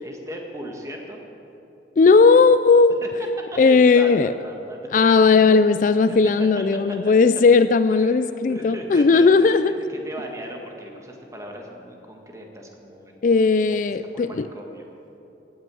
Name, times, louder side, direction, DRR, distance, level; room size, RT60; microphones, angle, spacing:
voice 1, 0.0-1.2 3.0-4.9 5.3-5.7 6.1-7.0 7.9-13.2 13.8-14.9, equal, 15° right, 1 dB, 1.6 m, -37 dB
voice 2, 2.0-3.0 3.6-4.3 4.9-9.7 13.2-14.5, left 4 dB, 45° left, 13 dB, 0.3 m, -16 dB
17.0 x 9.2 x 7.8 m, 3.0 s
head